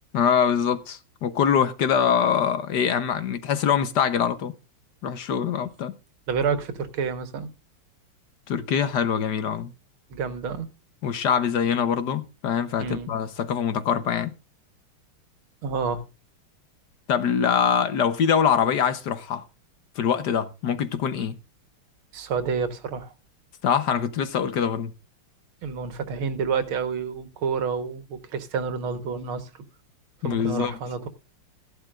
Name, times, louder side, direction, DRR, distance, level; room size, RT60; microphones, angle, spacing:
voice 1, 0.1-4.5 5.0-5.9 8.5-9.7 11.0-14.3 17.1-19.4 20.0-21.4 23.6-24.9 30.2-30.7, left 7 dB, 60° left, 1.4 m, -24 dB
voice 2, 6.3-7.5 10.1-10.7 12.8-13.1 15.6-16.1 22.1-23.1 25.6-29.6 30.2-31.1, right 5 dB, 75° right, 2.1 m, -29 dB
15.0 x 11.5 x 2.4 m
omnidirectional pair, 2.4 m